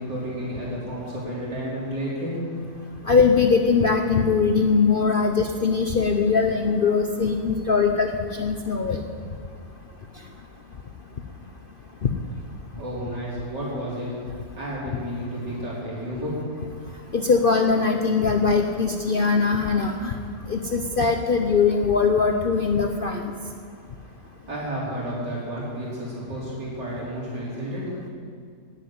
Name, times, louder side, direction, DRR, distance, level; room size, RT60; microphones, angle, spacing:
voice 1, 0.0-2.3 12.8-14.1 14.6-16.4 24.5-27.8, equal, 85° right, -7 dB, 4.8 m, -31 dB
voice 2, 3.1-8.1 8.4-9.0 17.1-20.1 20.5-23.3, left 5 dB, 50° left, 4 dB, 0.6 m, -21 dB
11.0 x 8.5 x 9.4 m, 2.2 s
omnidirectional pair, 1.8 m